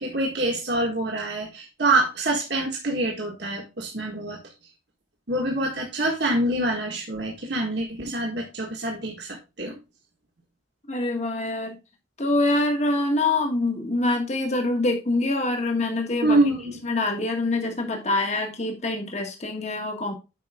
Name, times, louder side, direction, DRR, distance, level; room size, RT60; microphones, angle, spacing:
voice 1, 0.0-4.4 5.3-9.8 16.2-16.8, right 2 dB, 60° right, -1 dB, 1.7 m, -26 dB
voice 2, 10.9-11.8 12.2-16.4 16.8-20.1, left 2 dB, 35° left, 3 dB, 1.5 m, -25 dB
8.3 x 5.4 x 3.6 m, 0.27 s
head